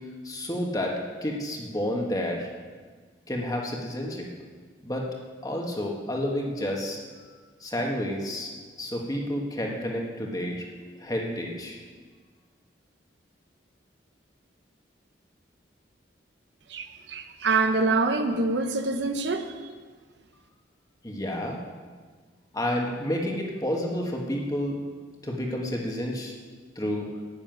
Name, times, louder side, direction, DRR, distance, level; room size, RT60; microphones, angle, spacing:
voice 1, 0.2-2.5 3.3-4.3 4.8-5.1 5.4-7.0 7.6-8.5 8.8-10.7 11.0-11.8 21.0-21.6 22.5-24.8 25.2-26.3 26.7-27.1, left 1 dB, 20° left, 0 dB, 1.6 m, -30 dB
voice 2, 16.7-19.7, right 3 dB, 75° right, 7 dB, 0.9 m, -26 dB
10.5 x 7.0 x 9.2 m, 1.5 s
head